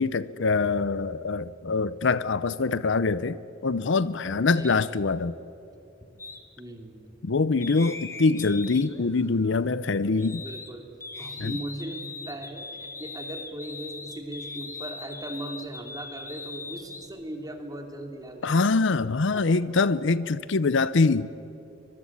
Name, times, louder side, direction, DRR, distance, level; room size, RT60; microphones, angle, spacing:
voice 1, 0.0-5.3 7.2-10.4 11.4-11.5 18.4-21.3, left 3 dB, 65° left, 0.7 m, -24 dB
voice 2, 4.5-5.3 6.6-7.2 10.3-10.9 11.2-18.7 19.3-19.5, right 1 dB, 20° right, 2.8 m, -39 dB
sound 1, 6.2-6.4 7.6-10.7 11.0-17.1, left 3 dB, 15° left, 1.6 m, -40 dB
24.5 x 21.5 x 8.6 m
head